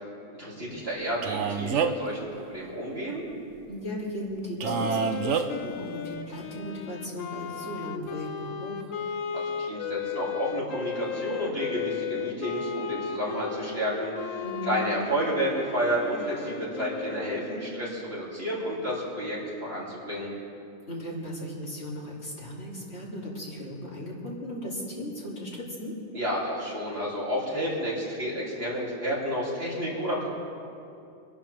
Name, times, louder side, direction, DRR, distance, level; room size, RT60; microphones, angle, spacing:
voice 1, 0.3-3.2 9.6-20.3 26.1-30.3, equal, 50° right, -6 dB, 3.6 m, -31 dB
Male speech man speaking, 1.2-2.1 4.6-5.4, right 6 dB, 70° right, 1.0 m, -27 dB
voice 2, 3.7-8.9 14.4-14.8 20.9-25.9, equal, 55° left, -6 dB, 3.2 m, -36 dB
Wind instrument woodwind instrument, 4.6-18.0, left 8 dB, 90° left, 1.2 m, -36 dB
25.5 x 11.5 x 3.5 m, 2.5 s
omnidirectional pair, 1.3 m